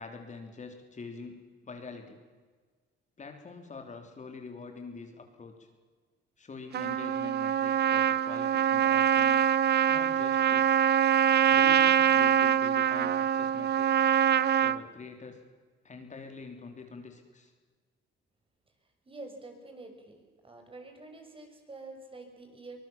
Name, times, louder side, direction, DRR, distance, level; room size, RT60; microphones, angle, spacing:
voice 1, 0.0-2.2 3.2-5.7 6.4-9.5 9.9-10.9 11.5-14.1 14.6-15.4 15.8-17.5, left 4 dB, 35° left, 5 dB, 3.4 m, -45 dB
Trumpet, 6.7-14.8, right 9 dB, 55° right, 0.8 m, -24 dB
voice 2, 19.1-20.2 20.4-22.9, right 2 dB, 25° right, 4 dB, 5.8 m, -47 dB
24.5 x 19.5 x 7.3 m, 1.5 s
cardioid pair, 90°, 20 cm